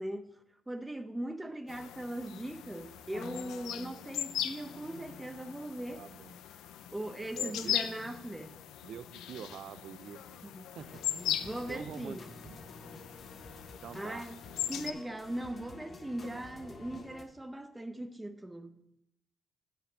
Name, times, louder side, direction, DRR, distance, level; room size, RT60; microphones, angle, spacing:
voice 1, 0.0-6.1 6.9-8.6 10.4-10.8 11.4-12.3 13.9-14.4 14.7-18.8, right 1 dB, 10° right, 0.8 m, -40 dB
sound 1, 1.7-14.9, left 11 dB, 90° left, 0.5 m, -39 dB
sound 2, 4.4-6.6 7.3-9.5, left 4 dB, 60° left, 2.4 m, -58 dB
voice 2, 6.0-6.3 7.4-7.8 8.8-11.4 11.7-12.2 12.4-12.6 13.8-14.2 16.2-16.4, right 8 dB, 70° right, 0.6 m, -46 dB
sound 3, 10.8-17.2, left 2 dB, 40° left, 1.3 m, -50 dB
9.3 x 5.0 x 7.1 m
cardioid pair, 90°, 0 cm